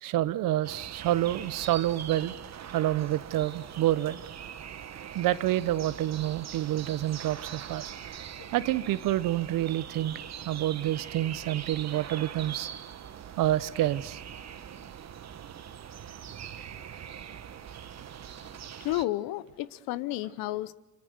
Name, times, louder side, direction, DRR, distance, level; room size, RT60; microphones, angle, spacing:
voice 1, 0.0-2.3 2.7-4.2 5.1-7.9 8.5-12.7 13.4-14.2, right 14 dB, 65° right, 17 dB, 1.0 m, -28 dB
sound 1, 0.6-19.1, right 9 dB, 50° right, 1.3 m, -42 dB
voice 2, 18.8-20.7, left 16 dB, 75° left, 17 dB, 0.9 m, -31 dB
27.0 x 23.5 x 6.7 m, 1.1 s
hypercardioid pair, 60°, 35 cm